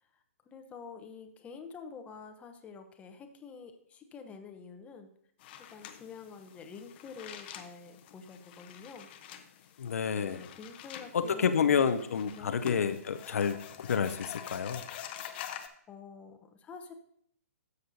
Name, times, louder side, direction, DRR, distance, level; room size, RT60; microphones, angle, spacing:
voice 1, 0.5-5.1 5.7-9.1 10.1-11.9 12.3-12.6 15.9-16.9, left 5 dB, 15° left, 6 dB, 0.8 m, -48 dB
sound 1, 5.4-15.7, left 9 dB, 40° left, 0.8 m, -46 dB
voice 2, 9.8-10.4 11.1-14.8, left 7 dB, 70° left, 9 dB, 0.6 m, -29 dB
13.0 x 6.7 x 2.7 m, 0.65 s
hypercardioid pair, 135°, 8 cm